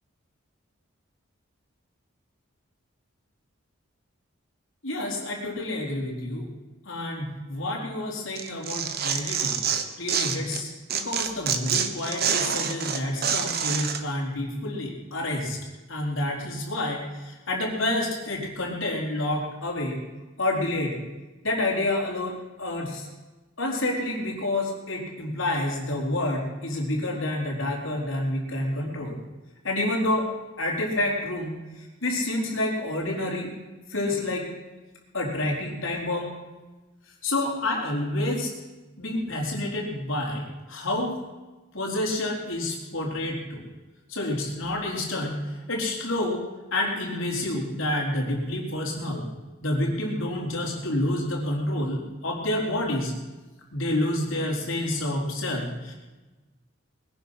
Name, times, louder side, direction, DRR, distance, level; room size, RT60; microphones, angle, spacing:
voice 1, 4.8-6.5 6.8-9.6 10.0-15.6 15.9-20.0 20.4-21.0 21.4-23.1 23.6-29.2 29.6-30.3 30.6-33.5 33.9-34.5 35.1-36.3 37.2-38.5 39.0-41.2 41.7-43.6 44.1-46.4 46.7-49.3 49.6-53.1 53.7-55.9, left 1 dB, 70° left, -1 dB, 4.2 m, -28 dB
Tearing, 8.3-10.6 10.9-14.0, right 7 dB, 45° right, 1.2 m, -27 dB
21.0 x 10.5 x 6.6 m, 1.2 s
head